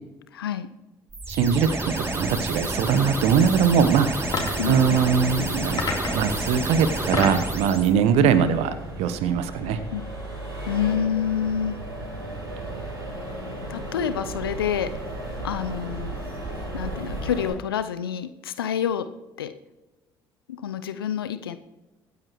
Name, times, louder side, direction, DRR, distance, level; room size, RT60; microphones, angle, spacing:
voice 1, 0.3-0.7 4.6-5.1 8.2-8.6 9.7-10.0 10.7-11.8 13.7-14.9 15.4-16.2 16.7-19.1 19.4-19.5 20.6-21.6, left 8 dB, 80° left, 12 dB, 0.7 m, -28 dB
sound 1, 1.1-7.9, right 2 dB, 20° right, 2.8 m, -29 dB
voice 2, 1.3-4.4 4.7-5.8 6.1-9.8, right 7 dB, 60° right, 12 dB, 1.2 m, -21 dB
Accelerating revving vroom, 2.9-17.5, right 1 dB, 90° right, 3.8 m, -35 dB
sound 2, 4.3-4.7 5.8-6.3 6.9-7.5, left 3 dB, 35° left, 3.6 m, -28 dB
24.0 x 9.6 x 3.1 m, 1.1 s
figure-of-eight pair, 50°, 12 cm